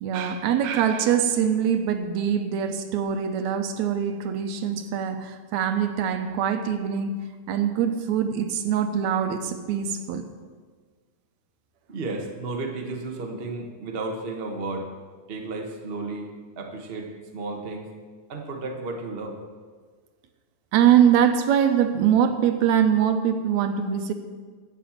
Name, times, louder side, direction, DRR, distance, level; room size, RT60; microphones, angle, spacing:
voice 1, 0.0-10.3 20.7-24.1, right 8 dB, 75° right, 8 dB, 2.1 m, -23 dB
voice 2, 11.9-14.9 15.3-17.9 18.3-19.4, right 3 dB, 60° right, 2 dB, 0.6 m, -33 dB
11.0 x 7.5 x 7.2 m, 1.5 s
omnidirectional pair, 3.3 m